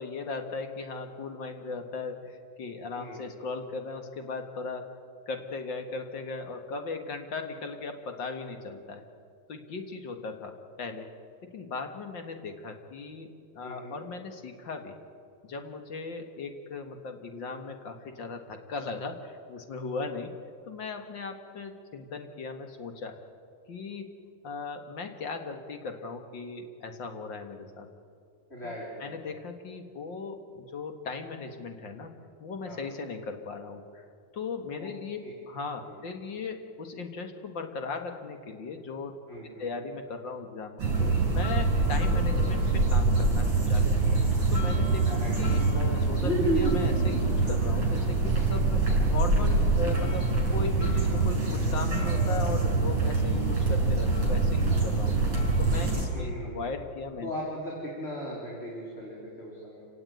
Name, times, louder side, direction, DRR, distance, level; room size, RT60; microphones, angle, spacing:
voice 1, 0.0-4.9 5.2-9.0 9.5-11.1 11.5-14.9 15.4-20.3 20.6-23.2 23.7-24.1 24.4-27.9 28.6-28.7 29.0-32.1 32.4-34.1 34.3-35.2 35.5-39.2 39.6-44.2 44.5-48.8 49.1-57.3, left 4 dB, 45° left, 5 dB, 1.6 m, -38 dB
voice 2, 2.9-3.3 13.6-14.0 28.5-29.4 32.6-32.8 34.8-34.9 35.8-36.0 39.3-39.8 45.1-45.4 56.1-56.6 57.2-59.8, equal, 15° left, -4 dB, 3.9 m, -39 dB
sound 1, 40.8-56.1, right 3 dB, 35° right, 6.8 m, -25 dB
28.0 x 17.0 x 9.3 m, 2.4 s
omnidirectional pair, 4.0 m